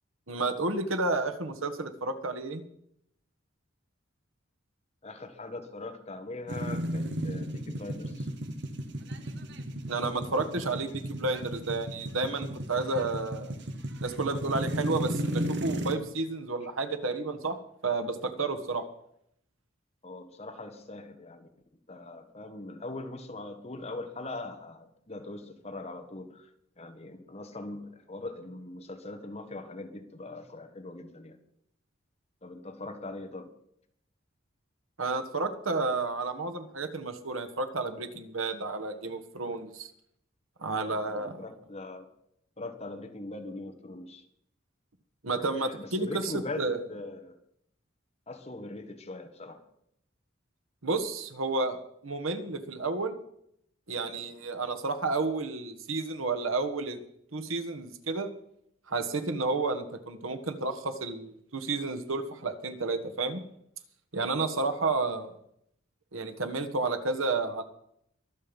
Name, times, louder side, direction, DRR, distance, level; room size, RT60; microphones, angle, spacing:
voice 1, 0.3-2.6 9.9-13.6 14.0-18.8 35.0-39.9 40.6-41.4 45.2-46.8 50.8-51.8 52.0-53.2 53.9-57.0 57.3-58.3 58.9-63.4 64.1-65.3 66.1-67.6, right 3 dB, 90° right, 8 dB, 1.5 m, -31 dB
voice 2, 5.0-8.3 20.0-21.5 21.9-26.5 26.8-31.4 32.4-33.5 41.2-42.1 42.6-44.2 45.6-47.3 48.3-49.6, left 2 dB, 30° left, 6 dB, 1.6 m, -41 dB
sound 1, 6.5-16.0, right 1 dB, 60° right, 1.4 m, -34 dB
23.0 x 7.8 x 5.3 m, 0.72 s
head